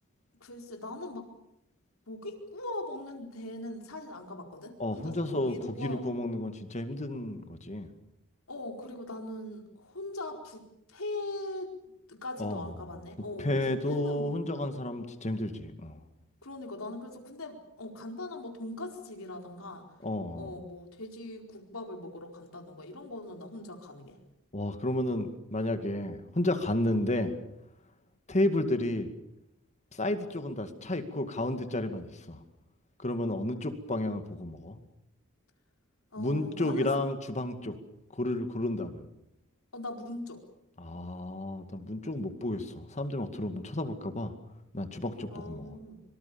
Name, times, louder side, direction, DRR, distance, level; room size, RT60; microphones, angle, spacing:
voice 1, 0.4-1.3 2.1-6.0 8.5-11.7 12.1-14.6 16.4-19.9 20.3-24.2 36.1-36.9 39.7-40.4 45.3-46.0, left 2 dB, 75° left, 3 dB, 4.6 m, -41 dB
voice 2, 4.8-7.9 12.4-12.7 13.4-16.0 20.0-20.5 24.5-27.4 28.3-29.1 29.9-32.4 33.0-34.8 36.2-37.8 38.1-39.0 40.8-44.3 44.7-45.7, left 1 dB, 35° left, 8 dB, 2.2 m, -32 dB
25.0 x 25.0 x 7.1 m, 0.82 s
head